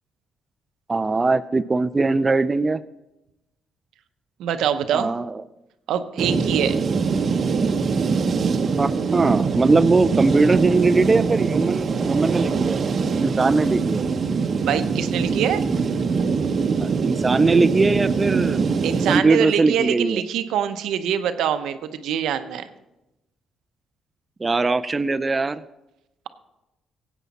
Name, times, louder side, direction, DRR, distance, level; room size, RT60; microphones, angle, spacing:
voice 1, 0.9-2.8 4.9-5.4 8.8-12.8 13.2-14.1 16.8-18.6 19.1-20.2 24.4-25.6, right 3 dB, 25° right, 11 dB, 0.3 m, -20 dB
voice 2, 4.4-5.1 5.9-6.8 14.6-15.6 18.8-22.6, right 9 dB, 80° right, 10 dB, 0.7 m, -24 dB
sound 1, 6.2-19.2, right 5 dB, 50° right, 0.7 m, -23 dB
15.0 x 8.2 x 4.1 m, 0.96 s
cardioid pair, 90°, 0 cm